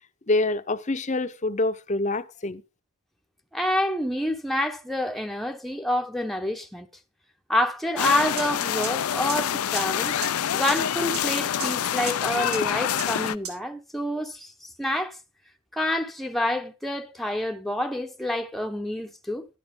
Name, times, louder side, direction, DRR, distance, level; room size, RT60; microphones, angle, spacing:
voice 1, 0.3-2.6, left 2 dB, 30° left, 0.7 m, -26 dB
voice 2, 3.5-6.9 7.5-10.2 10.5-15.2 15.7-19.5, left 1 dB, ahead, 0.8 m, -28 dB
sound 1, 8.0-13.3, left 9 dB, 85° left, 0.5 m, -26 dB
sound 2, 8.4-8.5 8.8-8.9 9.3-9.4 9.8-9.9 10.2-10.3 10.7-10.8 11.1-11.2 11.6-11.7 12.1-12.2 12.5-12.6 13.0-13.1 13.4-13.5, right 6 dB, 80° right, 5.2 m, -32 dB
13.0 x 11.0 x 3.8 m
head